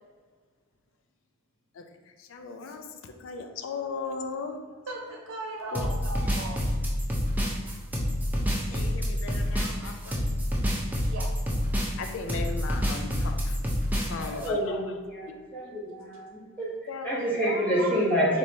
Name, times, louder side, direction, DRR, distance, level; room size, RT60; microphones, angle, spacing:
voice 1, 2.3-2.8 3.2-4.6 5.7-5.9 8.7-10.2 12.0-13.6 14.1-14.8 16.9-18.1, left 4 dB, 65° left, 6 dB, 0.4 m, -37 dB
voice 2, 4.9-6.6 11.1-11.3 17.8-18.3, right 2 dB, 65° right, -1 dB, 0.9 m, -37 dB
sound 1, 5.7-14.5, equal, 10° right, 0.5 m, -28 dB
voice 3, 14.3-16.7 17.0-18.4, equal, 10° left, -7 dB, 1.1 m, -28 dB
4.3 x 3.0 x 3.3 m, 1.5 s
head